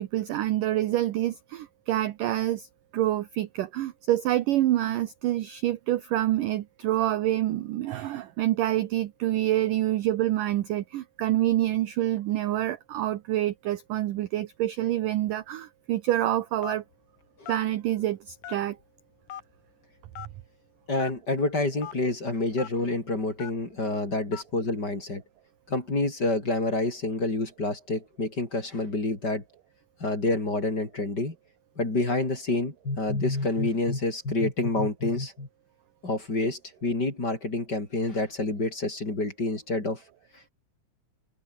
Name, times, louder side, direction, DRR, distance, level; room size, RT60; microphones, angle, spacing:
voice 1, 0.0-2.7 2.9-16.8 17.5-18.8, right 14 dB, 75° right, 2.0 m, -27 dB
Telephone, 16.6-16.9 17.4-17.6 18.4-18.8 19.3-19.4 20.1-20.3 21.0-21.1 21.8-21.9 22.6-22.7 23.4-23.6 24.3-24.5, left 10 dB, 55° left, 2.5 m, -39 dB
voice 2, 20.9-25.2 25.7-29.4 30.0-31.3 31.8-35.5 36.0-40.0, left 2 dB, 20° left, 5.5 m, -28 dB
omnidirectional pair, 5.0 m